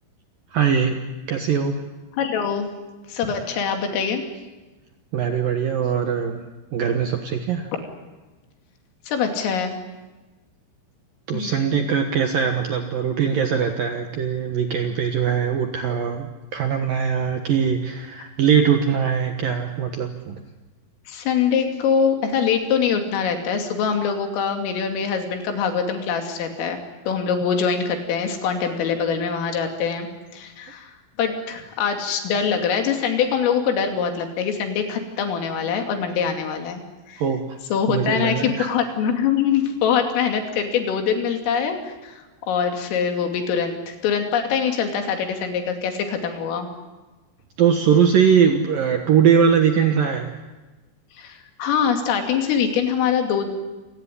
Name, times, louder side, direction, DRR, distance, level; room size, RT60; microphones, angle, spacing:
voice 1, 0.5-1.0 1.3-1.7 5.1-6.4 6.7-7.7 11.3-20.4 37.2-37.6 37.9-38.7 47.6-50.3, right 7 dB, 70° right, 5 dB, 2.2 m, -21 dB
voice 2, 2.2-2.7 3.1-4.2 9.1-9.8 11.3-11.8 21.1-26.8 27.1-30.9 31.2-36.8 37.1-37.2 37.7-41.8 42.0-42.2 42.5-46.7 51.2-53.5, left 7 dB, 80° left, 5 dB, 5.2 m, -23 dB
28.0 x 18.0 x 9.9 m, 1.2 s
omnidirectional pair, 5.8 m